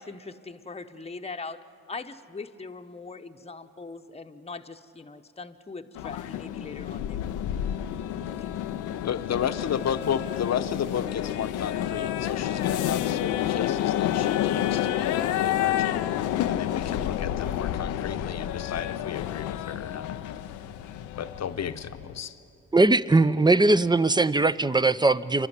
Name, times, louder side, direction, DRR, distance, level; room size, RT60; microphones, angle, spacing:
voice 1, 0.0-7.5 8.4-8.5, left 4 dB, 20° left, 6 dB, 1.0 m, -41 dB
sound 1, 5.9-22.2, left 11 dB, 85° left, 0.6 m, -29 dB
voice 2, 9.0-16.0 16.5-20.2 20.6-20.7 21.2-22.4, left 8 dB, 60° left, 10 dB, 1.0 m, -33 dB
voice 3, 22.7-25.5, right 2 dB, 15° right, 15 dB, 0.7 m, -20 dB
28.0 x 11.5 x 9.7 m, 2.6 s
supercardioid pair, 45°, 30 cm